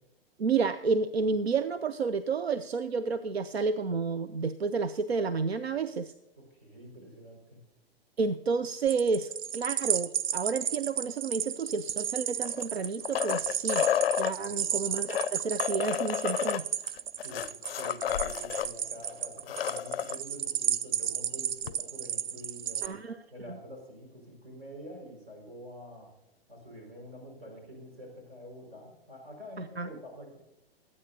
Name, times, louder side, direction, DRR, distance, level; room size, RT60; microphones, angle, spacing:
voice 1, 0.4-6.1 8.2-13.9 14.2-16.6 22.8-23.2 29.6-29.9, right 4 dB, 85° right, 14 dB, 0.5 m, -30 dB
voice 2, 6.4-7.6 14.4-14.7 17.1-17.5 17.8-23.0 23.3-26.1 26.5-30.4, equal, 70° right, 1 dB, 5.3 m, -47 dB
sound 1, 8.9-22.9, right 9 dB, 35° right, 0.5 m, -33 dB
sound 2, 12.4-14.3 15.0-18.7 19.0-19.1 19.4-20.2 21.7-21.8, left 10 dB, 70° left, 0.4 m, -30 dB
22.5 x 8.7 x 2.7 m, 0.91 s
figure-of-eight pair, 110°, 31 cm